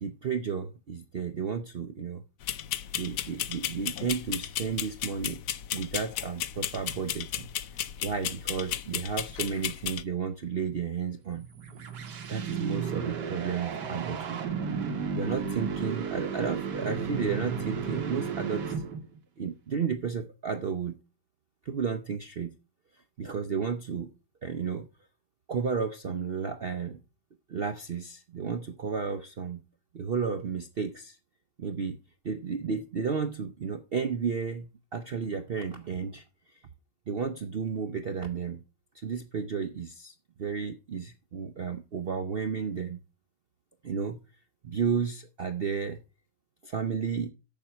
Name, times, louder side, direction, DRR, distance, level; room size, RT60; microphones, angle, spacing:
voice 1, 0.0-2.2 2.9-5.4 5.7-7.5 8.0-11.5 12.3-14.4 15.1-18.6 19.4-21.0 21.6-22.5 23.2-24.1 24.4-24.9 25.5-27.0 27.5-29.6 29.9-31.2 31.6-32.0 32.2-36.2 37.1-38.6 38.9-43.0 43.8-44.2 44.6-46.0 46.6-47.3, right 6 dB, 55° right, 0.6 m, -32 dB
sound 1, 2.4-10.0, left 11 dB, 65° left, 0.9 m, -34 dB
sound 2, 11.4-19.2, right 6 dB, 85° right, 1.9 m, -33 dB
7.4 x 7.2 x 5.7 m
omnidirectional pair, 1.8 m